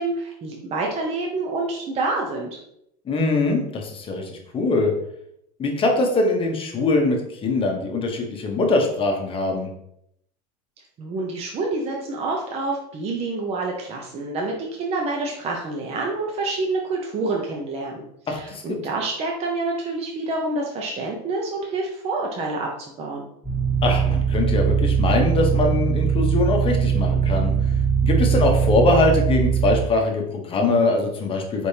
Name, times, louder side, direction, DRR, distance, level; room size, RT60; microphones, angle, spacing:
voice 1, 0.0-2.5 11.0-22.7 23.0-23.3, right 3 dB, 30° right, 0 dB, 0.7 m, -27 dB
voice 2, 3.0-4.9 5.6-9.7 18.3-18.8 23.8-27.5 28.0-31.7, left 2 dB, 25° left, 2 dB, 0.9 m, -22 dB
sound 1, 23.4-29.8, right 7 dB, 5° left, 1.4 m, -21 dB
4.4 x 3.3 x 2.7 m, 0.75 s
supercardioid pair, 120°, 21 cm